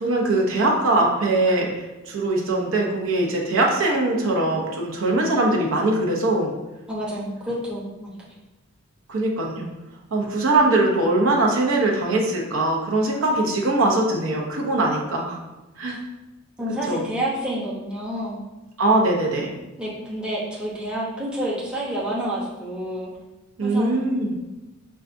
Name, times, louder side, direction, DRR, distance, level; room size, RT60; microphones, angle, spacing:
voice 1, 0.0-6.5 9.1-9.7 10.1-15.4 15.8-16.0 16.9-17.0 18.8-19.5 23.6-24.3, right 2 dB, 70° right, -1 dB, 0.7 m, -21 dB
voice 2, 6.9-8.1 15.9-16.0 16.6-18.4 19.8-23.1 23.6-24.0, right 1 dB, 5° right, -6 dB, 0.7 m, -29 dB
5.4 x 2.3 x 2.5 m, 1.1 s
head